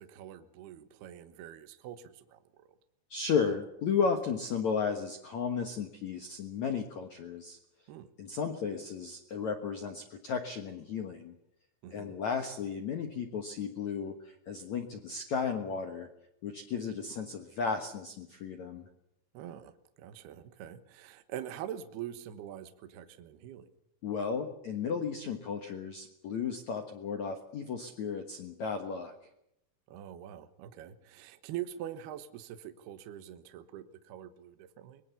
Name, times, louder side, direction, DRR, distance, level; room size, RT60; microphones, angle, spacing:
voice 1, 0.0-2.4 7.9-8.1 11.8-12.2 19.3-19.7 20.0-23.7 29.9-35.0, right 11 dB, 70° right, 9 dB, 2.7 m, -44 dB
voice 2, 3.1-7.6 8.2-11.3 11.9-16.1 16.4-18.9 24.0-29.1, left 6 dB, 90° left, 5 dB, 1.6 m, -34 dB
24.0 x 21.5 x 7.1 m, 0.78 s
omnidirectional pair, 5.8 m